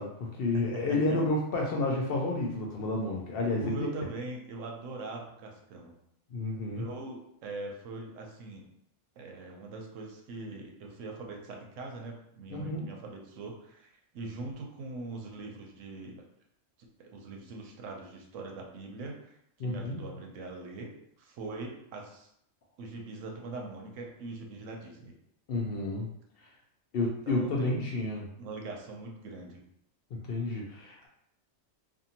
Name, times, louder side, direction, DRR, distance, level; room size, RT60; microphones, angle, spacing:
voice 1, 0.0-3.9 6.3-6.8 12.5-12.9 19.6-20.0 25.5-26.1 26.4-26.5 26.9-28.2 30.1-31.1, left 2 dB, 65° left, -2 dB, 0.6 m, -30 dB
voice 2, 0.5-1.2 3.6-5.9 6.7-8.7 9.2-16.2 17.0-20.9 21.2-22.3 22.8-25.1 27.3-27.9 28.4-29.6, right 3 dB, 80° right, 1 dB, 1.0 m, -42 dB
2.6 x 2.6 x 2.7 m, 0.73 s
omnidirectional pair, 1.3 m